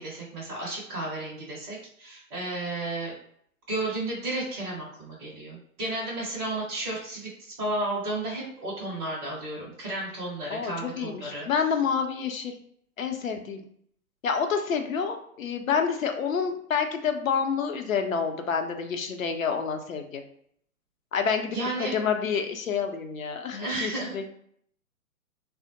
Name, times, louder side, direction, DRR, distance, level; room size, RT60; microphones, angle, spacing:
voice 1, 0.0-3.1 3.7-11.5 21.5-22.0 23.5-24.2, right 2 dB, 10° right, -7 dB, 0.5 m, -33 dB
voice 2, 10.5-12.5 13.0-13.6 14.2-20.2 21.1-24.3, left 6 dB, 65° left, 5 dB, 0.7 m, -28 dB
3.4 x 2.0 x 2.9 m, 0.66 s
figure-of-eight pair, 125°, 44 cm